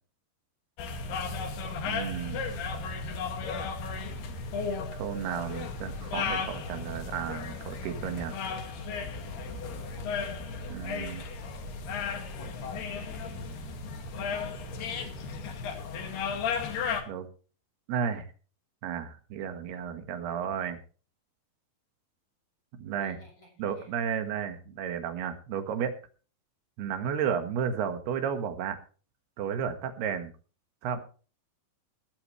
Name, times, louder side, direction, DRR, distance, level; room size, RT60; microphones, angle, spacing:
sound 1, 0.8-17.0, left 5 dB, 85° left, 4.2 m, -35 dB
voice 1, 1.9-2.4 4.9-8.4 10.7-11.2 17.1-17.3 17.9-18.3 18.8-20.8 22.8-23.2 23.6-25.9 26.8-28.8 29.4-30.3 30.8-31.0, right 7 dB, 90° right, 8 dB, 3.7 m, -33 dB
sound 2, 5.3-14.8, right 1 dB, 60° right, 4.2 m, -46 dB
voice 2, 8.3-11.1 23.0-23.9, left 1 dB, 30° left, 1 dB, 7.8 m, -58 dB
17.5 x 13.0 x 3.2 m, 0.37 s
omnidirectional pair, 4.4 m